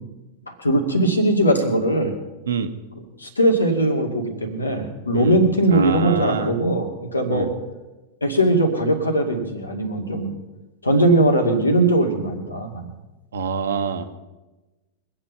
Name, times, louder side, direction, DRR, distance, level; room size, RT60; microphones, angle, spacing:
voice 1, 0.5-2.1 3.2-7.5 8.2-10.3 10.8-12.9, right 1 dB, 80° left, 4 dB, 2.3 m, -20 dB
voice 2, 5.7-6.5 7.3-7.5 13.3-14.2, right 5 dB, 65° right, 8 dB, 1.1 m, -26 dB
23.5 x 8.9 x 5.8 m, 1.1 s
figure-of-eight pair, 90°, 0 cm